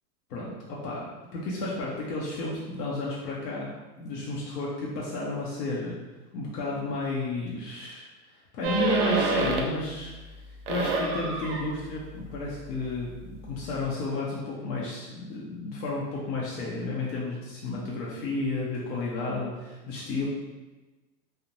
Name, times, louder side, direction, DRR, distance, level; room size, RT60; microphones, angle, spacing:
voice 1, 0.3-1.0 1.3-3.7 4.0-6.0 6.3-8.0 8.3-10.1 10.5-20.3, left 2 dB, 75° left, -5 dB, 0.7 m, -32 dB
sound 1, 8.6-9.9 10.2-13.9, right 3 dB, 50° right, 0.5 m, -30 dB
2.5 x 2.1 x 2.9 m, 1.2 s
supercardioid pair, 160°, 48 cm